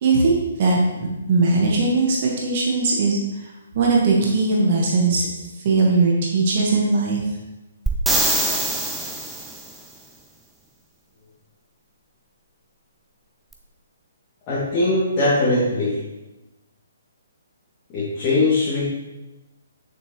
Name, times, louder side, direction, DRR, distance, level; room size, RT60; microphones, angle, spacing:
voice 1, 0.0-3.2 3.7-5.3 5.6-7.2, right 3 dB, 40° right, -2 dB, 1.6 m, -19 dB
sound 1, 7.9-9.7 13.5-13.6, right 2 dB, 5° right, 0.8 m, -23 dB
voice 2, 14.5-16.0 17.9-18.8, left 2 dB, 25° left, -11 dB, 2.7 m, -20 dB
8.8 x 6.9 x 3.2 m, 1.0 s
figure-of-eight pair, 130°, 0 cm